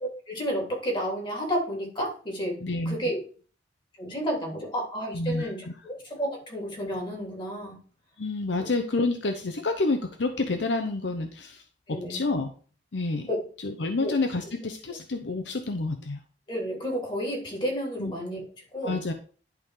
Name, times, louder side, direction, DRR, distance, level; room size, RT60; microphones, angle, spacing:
voice 1, 0.3-2.6 2.8-3.2 4.0-7.8 11.9-12.2 13.3-13.4 14.0-14.1 16.5-18.4 18.7-19.0, equal, 25° left, 0 dB, 3.1 m, -31 dB
voice 2, 2.6-3.0 5.1-5.7 8.2-11.6 12.1-12.5 12.9-13.3 13.6-16.2 18.0-18.1 18.8-19.1, left 3 dB, 70° left, 6 dB, 0.8 m, -28 dB
11.0 x 3.7 x 4.9 m, 0.40 s
head